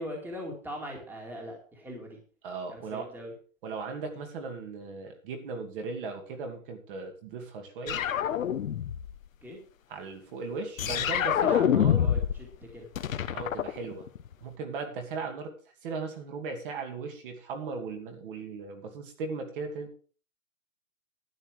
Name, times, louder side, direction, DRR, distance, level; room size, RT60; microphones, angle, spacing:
voice 1, 0.0-2.2 2.7-3.3 9.4-9.6 11.4-12.5 12.7-12.9, equal, 5° right, 0 dB, 2.3 m, -41 dB
voice 2, 2.4-3.0 3.6-8.1 9.9-12.2 13.3-14.1 14.4-15.5 15.8-19.9, right 4 dB, 40° right, 4 dB, 2.6 m, -37 dB
sound 1, 7.9-9.2 10.8-12.5 12.7-14.3, left 9 dB, 70° left, 1.3 m, -26 dB
12.5 x 8.7 x 5.0 m, 0.40 s
hypercardioid pair, 160°, 41 cm